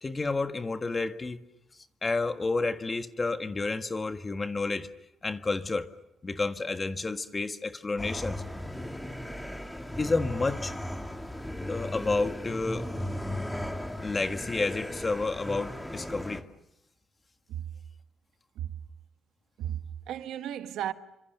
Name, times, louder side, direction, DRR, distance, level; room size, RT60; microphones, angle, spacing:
voice 1, 0.0-1.4 2.0-4.9 5.2-5.9 6.2-8.4 10.0-10.7 11.7-12.9 14.0-16.4, left 3 dB, 25° left, 1.6 m, -30 dB
sound 1, 8.0-16.4, left 1 dB, 5° left, 2.9 m, -36 dB
voice 2, 19.6-20.9, right 11 dB, 85° right, 1.5 m, -34 dB
29.5 x 25.5 x 6.8 m
cardioid pair, 90°, 0 cm